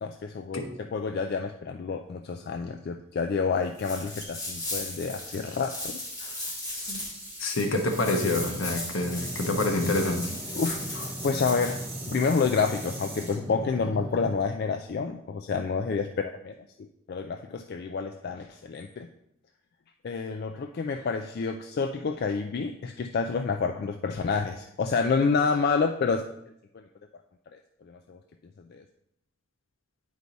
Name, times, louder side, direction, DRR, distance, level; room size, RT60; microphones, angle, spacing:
voice 1, 0.0-6.5 10.5-11.8 12.1-19.1 20.0-26.2 26.7-26.8 27.5-28.2 28.7-28.8, left 5 dB, 50° left, 5 dB, 0.3 m, -29 dB
sound 1, 3.7-11.9, left 2 dB, 20° left, 1.9 m, -37 dB
sound 2, 4.2-14.4, right 3 dB, 25° right, 1.6 m, -43 dB
voice 2, 7.4-10.3, left 2 dB, 75° left, 3 dB, 1.1 m, -27 dB
sound 3, 8.9-14.4, equal, 5° right, 0.6 m, -38 dB
8.4 x 4.8 x 3.9 m, 0.77 s
head